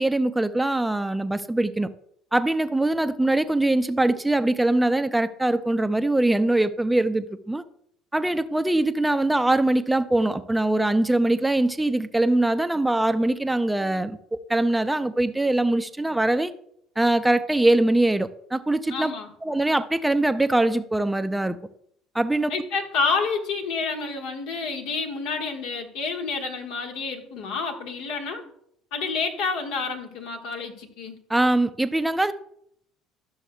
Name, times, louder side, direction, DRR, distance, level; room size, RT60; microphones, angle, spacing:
voice 1, 0.0-1.9 2.3-7.6 8.1-14.2 14.5-16.5 17.0-19.1 19.4-21.6 22.1-22.5 31.3-32.3, right 2 dB, 10° right, 11 dB, 0.5 m, -22 dB
voice 2, 18.9-19.3 22.5-28.4 28.9-31.2, left 4 dB, 75° left, 2 dB, 1.4 m, -29 dB
12.5 x 6.3 x 2.2 m, 0.69 s
hypercardioid pair, 70°, 0 cm